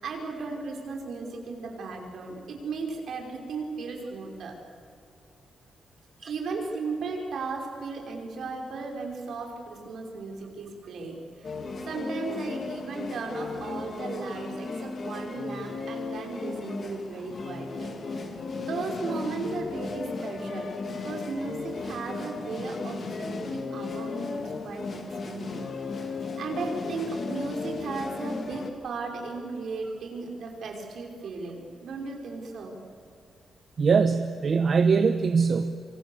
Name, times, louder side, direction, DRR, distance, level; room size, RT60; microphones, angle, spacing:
voice 1, 0.0-4.5 6.3-11.6 11.9-25.6 26.0-32.7, right 3 dB, 65° right, 1 dB, 5.4 m, -36 dB
sound 1, 11.4-28.7, left 4 dB, 40° left, 2.5 m, -35 dB
voice 2, 33.8-35.7, right 5 dB, 40° right, 9 dB, 1.0 m, -22 dB
26.5 x 26.5 x 7.2 m, 2.4 s
wide cardioid pair, 155°, 0 cm